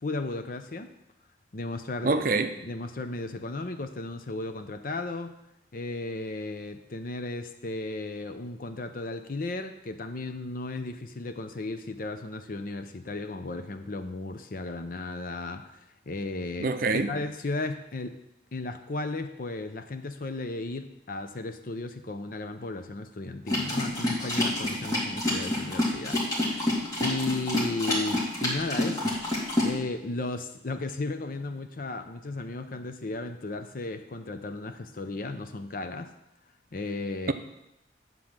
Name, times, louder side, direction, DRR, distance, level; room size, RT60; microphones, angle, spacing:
voice 1, 0.0-1.0 1.5-2.2 2.6-5.3 5.7-18.2 18.5-29.2 29.6-36.1 36.7-37.3, left 2 dB, 50° left, 8 dB, 0.7 m, -35 dB
voice 2, 2.0-2.5 16.6-17.1, right 3 dB, 55° right, 8 dB, 0.6 m, -25 dB
sound 1, 23.5-29.7, left 1 dB, 20° left, 2.4 m, -28 dB
9.6 x 3.9 x 7.3 m, 0.87 s
head